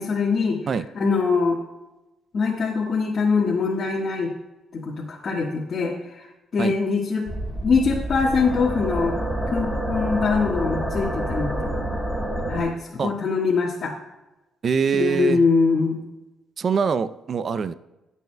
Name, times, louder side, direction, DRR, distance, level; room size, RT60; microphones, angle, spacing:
voice 1, 0.0-0.6 0.9-1.6 2.3-4.3 4.7-6.3 6.5-7.3 7.6-9.2 9.5-11.7 12.5-13.9 14.9-16.0, left 4 dB, 50° left, -3 dB, 1.4 m, -23 dB
sound 1, 7.3-12.6, right 1 dB, 10° right, 3.7 m, -27 dB
voice 2, 14.6-15.4 16.6-17.7, right 6 dB, 50° right, 13 dB, 0.5 m, -23 dB
19.5 x 8.2 x 2.2 m, 1.0 s
cardioid pair, 90°, 0 cm